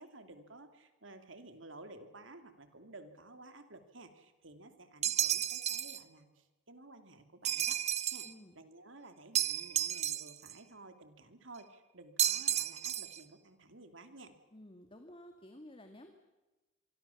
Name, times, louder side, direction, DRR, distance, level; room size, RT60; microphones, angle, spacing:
voice 1, 0.0-7.8 8.1-8.3 8.5-14.3, right 2 dB, 75° right, 8 dB, 2.8 m, -54 dB
sound 1, 5.0-6.0 7.4-8.3 9.3-10.5 12.2-13.2, right 10 dB, 35° right, 0.9 m, -32 dB
voice 2, 8.2-8.6 14.5-16.1, left 1 dB, 30° left, 6 dB, 2.1 m, -53 dB
27.0 x 23.5 x 7.1 m, 1.1 s
head